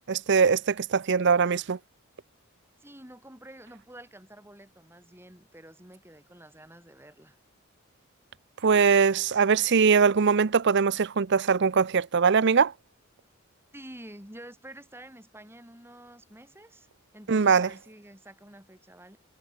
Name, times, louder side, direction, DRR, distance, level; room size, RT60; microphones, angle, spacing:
voice 1, 0.0-1.8 8.6-12.7 17.3-17.7, right 5 dB, 55° right, 0.6 m, -22 dB
voice 2, 2.8-7.4 13.7-16.9 17.1-19.2, right 1 dB, 10° right, 6.8 m, -48 dB
head